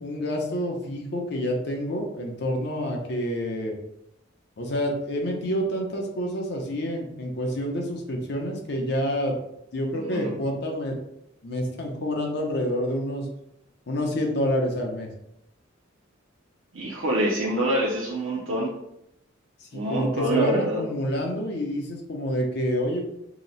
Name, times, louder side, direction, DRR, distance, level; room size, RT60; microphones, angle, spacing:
voice 1, 0.0-3.7 4.6-9.3 9.7-11.0 11.4-13.3 13.9-15.1 19.7-23.0, equal, 55° left, 1 dB, 0.6 m, -28 dB
voice 2, 9.9-10.3 16.7-18.7 19.7-20.8, right 1 dB, 75° right, -4 dB, 0.5 m, -26 dB
2.8 x 2.0 x 3.9 m, 0.80 s
head